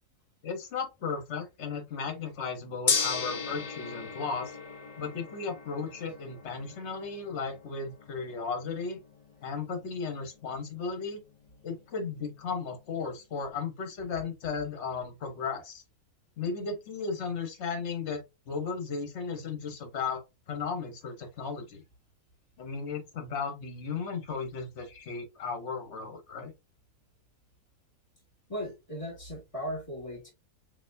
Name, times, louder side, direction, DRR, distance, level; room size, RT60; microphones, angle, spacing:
voice 1, 0.4-4.6 5.0-9.0 9.4-11.2 11.6-15.8 16.4-21.8 22.6-26.5, left 5 dB, 55° left, 1.2 m, -35 dB
Gong, 2.9-13.1, left 5 dB, 70° left, 0.3 m, -37 dB
voice 2, 28.5-30.3, equal, 25° left, 1.8 m, -37 dB
4.2 x 2.8 x 2.6 m
omnidirectional pair, 1.5 m